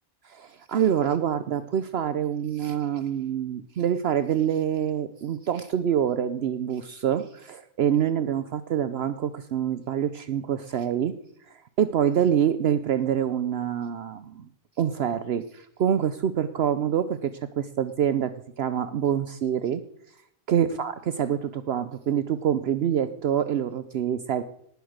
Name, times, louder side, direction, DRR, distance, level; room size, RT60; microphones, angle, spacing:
voice 1, 0.2-11.1 11.5-14.5 14.8-17.3 17.6-19.8 20.5-24.4, right 9 dB, 65° right, 12 dB, 0.9 m, -26 dB
18.5 x 7.9 x 6.5 m, 0.72 s
omnidirectional pair, 1.2 m